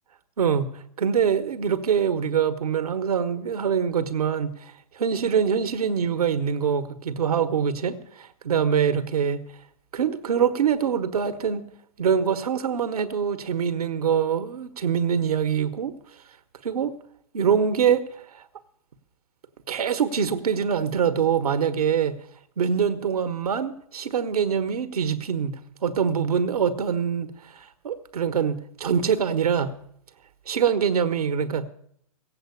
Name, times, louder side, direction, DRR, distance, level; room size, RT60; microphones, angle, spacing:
voice 1, 0.4-9.4 9.9-11.7 12.0-15.9 16.6-17.0 17.3-18.4 19.7-22.2 22.6-29.7 30.5-31.7, right 7 dB, 80° right, 1.3 m, -24 dB
16.5 x 7.8 x 8.3 m
hypercardioid pair, 155°, 19 cm